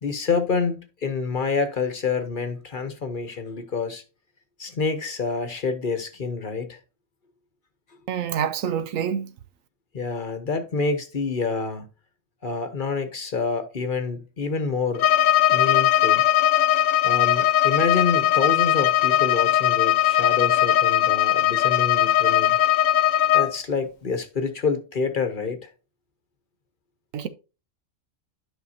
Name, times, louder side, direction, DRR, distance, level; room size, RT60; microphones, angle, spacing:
voice 1, 0.0-4.0 4.6-6.8 9.9-11.9 12.4-15.1 15.5-16.2 17.0-22.6 23.3-25.7, left 4 dB, 45° left, 1.0 m, -27 dB
voice 2, 8.1-9.3 27.1-27.3, right 8 dB, 85° right, 1.1 m, -27 dB
Bowed string instrument, 14.9-23.5, left 11 dB, 85° left, 1.1 m, -19 dB
11.0 x 5.7 x 2.7 m
omnidirectional pair, 1.4 m